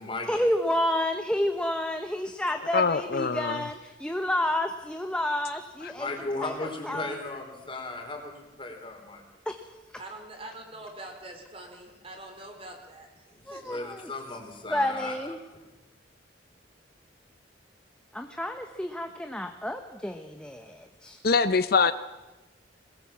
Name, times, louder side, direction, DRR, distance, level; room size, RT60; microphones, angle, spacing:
voice 1, 0.3-6.1 6.4-7.1 9.5-9.6 13.5-14.1 14.7-15.4 18.1-21.2, left 1 dB, 5° left, 5 dB, 1.1 m, -30 dB
voice 2, 2.7-3.6 21.2-21.9, left 4 dB, 55° left, 12 dB, 0.7 m, -23 dB
voice 3, 5.9-8.3 8.6-9.2 13.3-15.1 15.5-15.6, left 2 dB, 30° left, 3 dB, 4.3 m, -36 dB
voice 4, 10.0-13.8, right 2 dB, 30° right, 3 dB, 4.5 m, -44 dB
22.0 x 21.0 x 7.4 m, 1.1 s
head